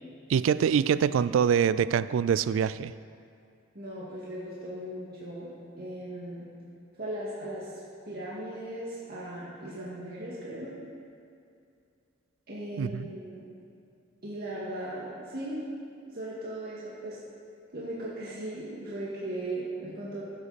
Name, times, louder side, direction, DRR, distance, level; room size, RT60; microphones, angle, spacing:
voice 1, 0.3-2.9 12.8-13.1, right 7 dB, 80° right, 16 dB, 0.3 m, -24 dB
voice 2, 3.7-5.5 5.8-6.5 7.0-7.7 8.0-10.7 12.5-13.5 14.2-15.6 16.0-17.2 17.7-20.2, right 1 dB, 50° right, -7 dB, 2.0 m, -37 dB
15.5 x 8.3 x 4.1 m, 2.4 s
head